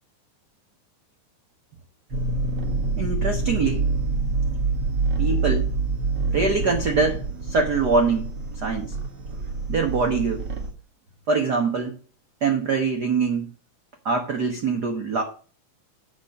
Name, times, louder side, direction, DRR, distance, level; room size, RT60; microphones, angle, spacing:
sound 1, 2.1-10.7, right 3 dB, 45° right, 1.8 m, -26 dB
voice 1, 3.0-3.9 5.2-5.7 6.3-8.3 8.6-8.9 9.7-10.4 11.3-11.9 12.4-13.5 14.0-15.2, right 4 dB, 85° right, 4 dB, 0.8 m, -23 dB
8.9 x 5.8 x 6.4 m, 0.39 s
omnidirectional pair, 3.6 m